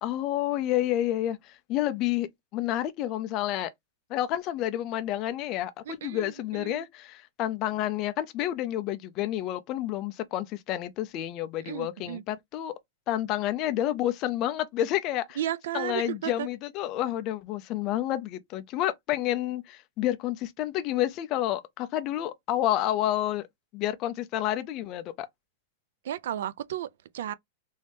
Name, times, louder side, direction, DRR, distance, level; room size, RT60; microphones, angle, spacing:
voice 1, 0.0-3.7 4.1-12.7 13.1-15.4 15.7-23.5 23.7-25.3, left 13 dB, 25° left, 0.4 m, -29 dB
voice 2, 5.9-6.9 11.6-12.2 15.4-16.5 26.0-27.3, right 11 dB, 65° right, 0.3 m, -34 dB
3.1 x 2.6 x 3.3 m
supercardioid pair, 180°, 0 cm